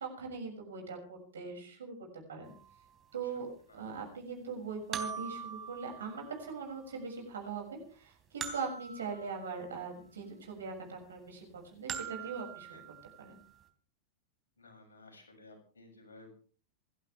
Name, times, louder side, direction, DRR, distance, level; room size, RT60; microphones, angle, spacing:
voice 1, 0.0-2.5 3.1-3.5 3.7-12.8 13.2-13.4, right 5 dB, 65° right, 2 dB, 6.7 m, -41 dB
sound 1, 2.5-2.6 4.9-6.8 8.4-10.1 11.9-13.3, right 7 dB, 25° right, 3.3 m, -43 dB
voice 2, 14.6-16.3, left 2 dB, 70° left, 2 dB, 7.3 m, -56 dB
28.5 x 12.0 x 3.5 m, 0.41 s
figure-of-eight pair, 90°, 0 cm